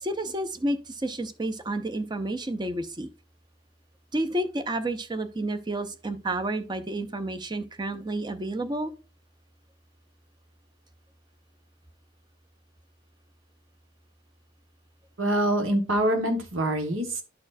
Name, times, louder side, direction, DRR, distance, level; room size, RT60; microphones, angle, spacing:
voice 1, 0.0-3.1 4.1-8.9, right 1 dB, 20° right, 9 dB, 0.5 m, -30 dB
voice 2, 15.2-17.2, right 1 dB, 85° right, 5 dB, 1.5 m, -25 dB
11.5 x 4.3 x 2.6 m, 0.34 s
head